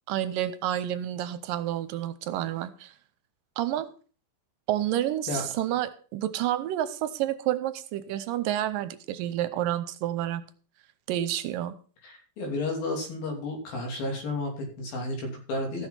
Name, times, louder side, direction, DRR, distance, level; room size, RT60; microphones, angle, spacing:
voice 1, 0.1-2.9 3.6-3.9 4.7-10.4 11.1-11.8, right 12 dB, 80° right, 12 dB, 2.3 m, -29 dB
voice 2, 12.0-15.9, left 2 dB, 80° left, 1 dB, 4.8 m, -32 dB
14.5 x 6.4 x 5.7 m, 0.40 s
omnidirectional pair, 4.1 m